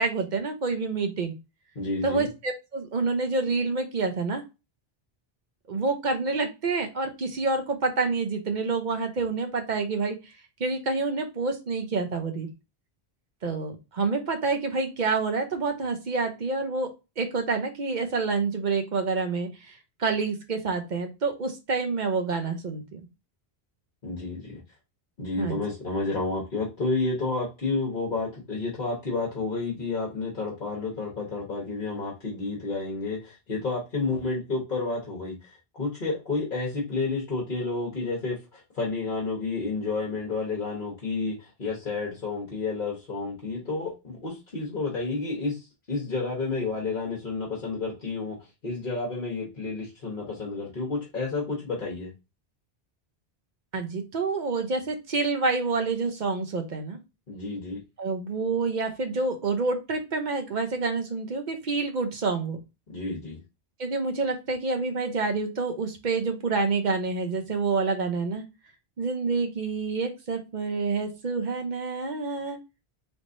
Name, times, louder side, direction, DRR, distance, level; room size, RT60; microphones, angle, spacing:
voice 1, 0.0-1.3 2.0-4.4 5.7-10.3 10.6-12.5 13.4-23.0 25.4-25.6 53.7-57.0 58.0-62.6 63.8-68.4 69.0-72.6, right 4 dB, 50° right, 5 dB, 0.8 m, -28 dB
voice 2, 1.7-2.3 24.0-24.6 25.2-35.4 35.7-48.4 48.6-52.1 57.3-57.8 62.9-63.4, left 3 dB, 55° left, -4 dB, 1.2 m, -30 dB
3.5 x 3.1 x 2.5 m, 0.26 s
omnidirectional pair, 1.1 m